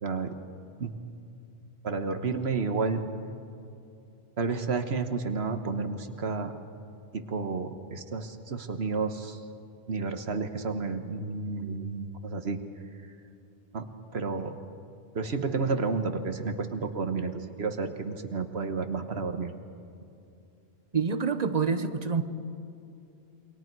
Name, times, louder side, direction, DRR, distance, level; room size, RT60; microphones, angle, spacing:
voice 1, 0.0-0.3 0.8-0.9 1.8-3.0 4.4-6.5 7.1-9.4 9.9-12.6 13.7-13.9 14.1-14.5 15.1-19.5, right 4 dB, 80° right, 8 dB, 1.5 m, -31 dB
voice 2, 20.9-22.2, right 5 dB, 40° right, 10 dB, 1.1 m, -27 dB
29.0 x 23.5 x 4.7 m, 2.7 s
omnidirectional pair, 1.1 m